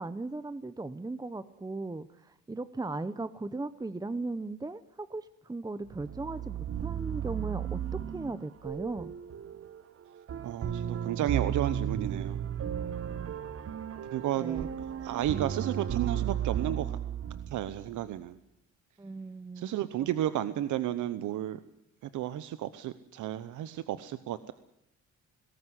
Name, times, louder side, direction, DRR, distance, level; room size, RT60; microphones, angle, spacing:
voice 1, 0.0-7.8 8.1-9.1 14.4-14.7 19.0-19.7, right 2 dB, 15° right, 14 dB, 0.8 m, -37 dB
sound 1, 5.9-18.0, right 9 dB, 50° right, 1.1 m, -34 dB
voice 2, 10.4-12.4 14.0-14.7 15.0-17.0 17.5-18.4 19.6-21.6 22.0-24.5, right 12 dB, 80° right, 13 dB, 0.9 m, -32 dB
19.0 x 17.5 x 9.8 m, 0.79 s
cardioid pair, 90°, 30 cm